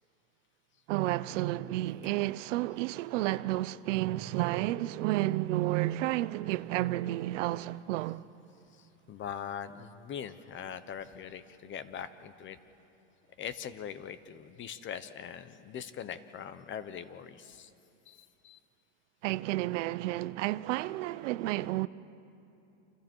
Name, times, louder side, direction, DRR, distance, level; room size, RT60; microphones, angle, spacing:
voice 1, 0.9-8.2 19.2-21.9, right 17 dB, 80° right, 0.7 m, -31 dB
voice 2, 8.7-12.6 13.4-17.7 18.1-18.6, left 8 dB, 30° left, 1.1 m, -42 dB
29.0 x 27.0 x 4.6 m
supercardioid pair, 130°, 36 cm